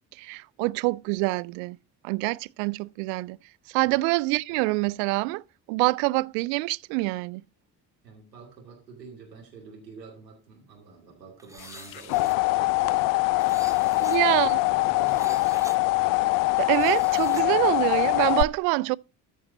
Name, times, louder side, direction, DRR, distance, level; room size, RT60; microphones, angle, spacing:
voice 1, 0.2-1.8 2.0-3.4 3.7-5.4 5.7-7.4 14.0-14.6 16.6-19.0, right 24 dB, 60° right, 0.5 m, -25 dB
voice 2, 8.0-13.1 13.9-15.8, right 4 dB, 80° right, 2.7 m, -47 dB
sound 1, 11.4-12.3 13.4-14.2 15.1-15.8 16.6-17.4, right 1 dB, 5° right, 1.3 m, -46 dB
sound 2, 11.7-18.4, left 22 dB, 45° left, 0.4 m, -23 dB
13.5 x 5.4 x 3.9 m
figure-of-eight pair, 45°, 49 cm